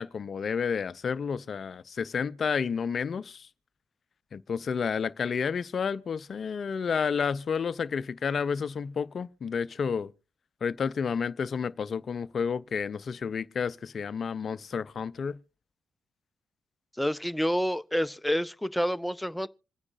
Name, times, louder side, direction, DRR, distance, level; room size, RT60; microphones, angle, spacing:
voice 1, 0.0-3.5 4.3-10.1 10.6-15.4, left 6 dB, 50° left, 0.5 m, -30 dB
voice 2, 17.0-19.5, equal, 5° left, 0.6 m, -28 dB
26.5 x 9.7 x 2.6 m
figure-of-eight pair, 40°, 0 cm